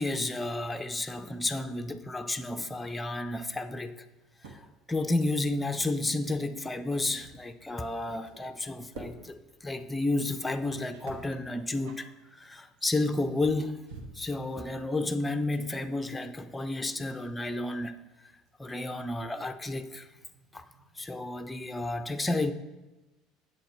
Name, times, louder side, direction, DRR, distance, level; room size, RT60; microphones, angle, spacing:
voice 1, 0.0-4.0 4.4-13.8 14.1-18.0 18.6-20.1 20.5-20.6 21.0-22.5, left 2 dB, 10° left, 0.5 m, -32 dB
sound 1, 3.3-5.7 5.9-6.1 6.8-21.3, right 3 dB, 65° right, 1.0 m, -53 dB
11.5 x 7.7 x 2.4 m
figure-of-eight pair, 65°, 0 cm